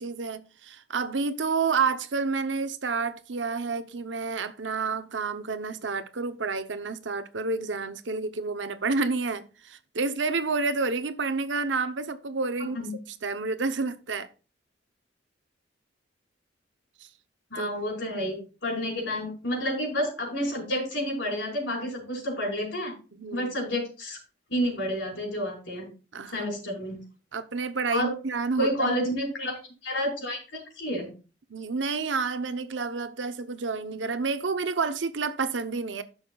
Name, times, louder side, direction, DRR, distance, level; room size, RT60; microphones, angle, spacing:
voice 1, 0.0-12.8 13.2-14.3 17.0-17.1 17.6-17.7 23.1-23.5 26.1-26.5 27.3-29.0 31.5-36.0, right 4 dB, 80° right, 0.8 m, -29 dB
voice 2, 12.6-12.9 17.5-22.9 23.3-24.2 24.5-25.9 26.3-27.0 27.9-28.1 28.6-29.5 29.8-31.1, equal, 70° left, 5.1 m, -30 dB
15.5 x 6.4 x 2.4 m
head